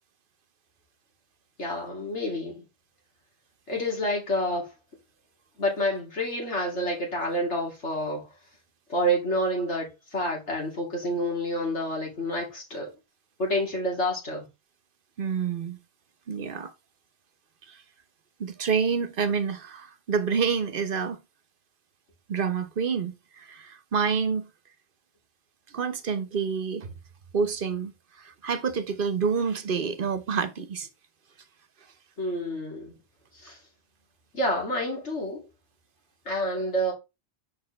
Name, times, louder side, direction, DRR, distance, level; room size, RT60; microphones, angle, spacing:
voice 1, 1.6-2.6 3.7-4.7 5.6-8.3 8.9-12.9 13.4-14.5 32.2-33.0 33.4-33.6 34.3-35.5 36.2-36.9, equal, 85° left, 2.9 m, -28 dB
voice 2, 15.2-15.8 16.3-16.7 17.7-17.8 18.4-21.2 22.3-24.5 25.7-26.9 27.3-27.9 28.2-30.9, right 6 dB, 55° right, 0.9 m, -28 dB
6.5 x 5.0 x 3.1 m
omnidirectional pair, 1.1 m